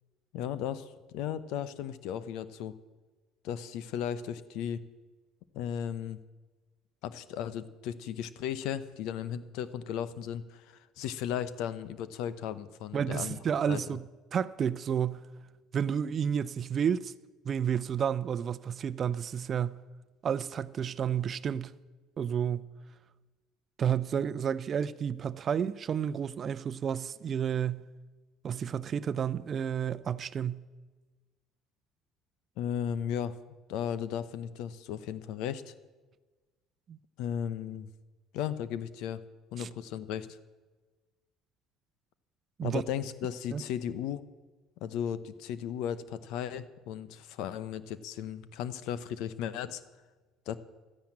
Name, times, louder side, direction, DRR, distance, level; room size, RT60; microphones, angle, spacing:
voice 1, 0.3-2.8 3.4-4.8 5.5-6.2 7.0-13.4 13.7-13.8 32.6-33.4 33.7-35.7 37.2-37.9 38.3-39.2 39.5-40.4 42.6-44.2 44.8-49.8 50.5-50.6, left 9 dB, 75° left, 0.9 m, -35 dB
voice 2, 12.9-14.1 14.3-15.3 15.7-17.1 17.4-19.8 20.2-21.7 22.2-22.7 23.8-27.9 28.4-30.6 36.9-37.0 39.6-39.7 42.6-42.8 43.5-43.6, right 8 dB, 45° right, 0.6 m, -31 dB
13.0 x 10.5 x 8.8 m
supercardioid pair, 90°, 0 cm